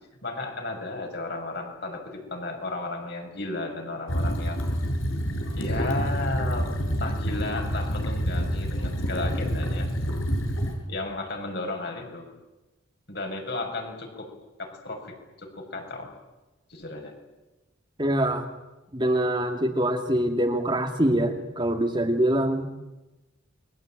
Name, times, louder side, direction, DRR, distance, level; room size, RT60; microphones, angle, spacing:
voice 1, 0.2-4.6 5.5-9.9 10.9-12.2 13.1-14.3 14.6-16.1 16.7-17.1, left 2 dB, 55° left, 2 dB, 6.8 m, -34 dB
sound 1, 4.1-10.7, equal, 85° left, 6.6 m, -28 dB
voice 2, 18.0-18.5 18.9-22.8, right 1 dB, 25° right, 4 dB, 2.3 m, -24 dB
29.0 x 22.5 x 9.1 m, 1.1 s
head